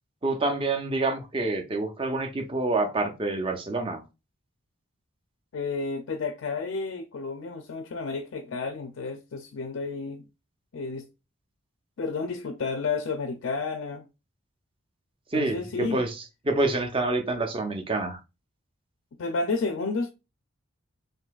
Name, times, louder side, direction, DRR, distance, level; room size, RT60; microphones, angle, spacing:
voice 1, 0.2-4.0 15.3-16.2 16.5-18.2, right 2 dB, 25° right, 0.6 m, -27 dB
voice 2, 5.5-10.2 10.7-11.0 12.0-14.0 15.3-16.0 19.2-20.1, left 4 dB, 65° left, 0.4 m, -31 dB
3.8 x 2.7 x 2.3 m
head